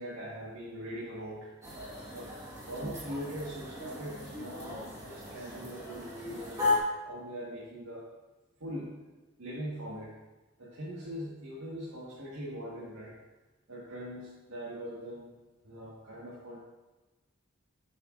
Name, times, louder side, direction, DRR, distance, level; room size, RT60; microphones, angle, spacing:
voice 1, 0.0-1.5 1.8-4.8 5.0-6.7 7.0-8.0 8.6-8.9 9.4-10.1 10.6-13.2 13.7-15.3 15.6-16.6, equal, 85° right, -7 dB, 1.7 m, -41 dB
sound 1, 1.6-6.8, left 3 dB, 15° right, 1.5 m, -36 dB
9.0 x 6.9 x 2.6 m, 1.2 s
head